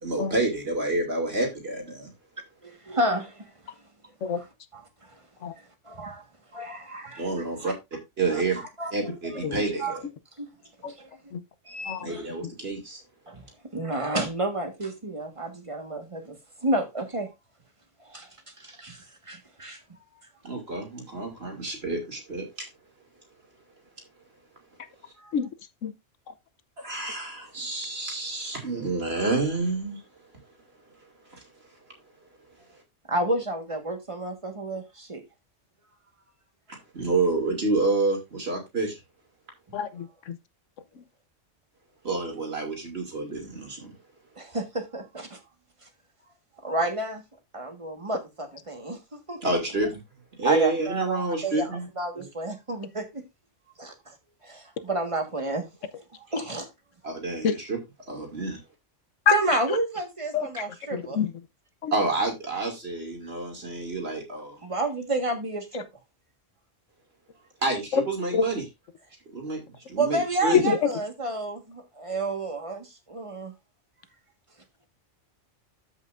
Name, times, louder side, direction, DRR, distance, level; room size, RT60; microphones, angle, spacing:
voice 1, 0.0-2.1 7.2-8.6 8.9-10.1 12.0-13.0 20.4-22.7 26.8-30.0 31.3-31.4 36.9-39.0 42.0-43.9 49.4-50.0 50.4-51.9 52.2-52.3 57.0-57.8 58.1-58.6 61.9-64.6 67.6-68.6 69.3-69.6 69.9-70.6, right 3 dB, 55° right, 2.8 m, -28 dB
voice 2, 2.6-3.4 4.3-4.5 4.7-4.9 5.8-6.2 6.5-7.7 8.3-8.4 8.8-9.4 9.8-10.0 10.4-10.5 10.9-11.1 11.7-12.2 13.3-13.4 13.7-16.4 16.6-17.3 18.0-18.3 18.6-19.8 25.2-25.3 33.1-35.2 44.4-45.4 46.6-47.2 47.5-49.4 50.4-51.7 52.0-53.2 53.8-54.1 54.4-55.7 56.3-56.7 59.3-61.2 64.6-65.8 70.0-73.5, right 2 dB, 25° right, 1.6 m, -30 dB
voice 3, 39.7-40.4 57.4-57.5 59.3-59.4 60.3-60.5 60.9-61.3 61.8-61.9 67.9-68.0 68.3-68.4 70.5-70.8, left 7 dB, 90° left, 1.2 m, -25 dB
13.0 x 5.6 x 2.6 m
omnidirectional pair, 1.2 m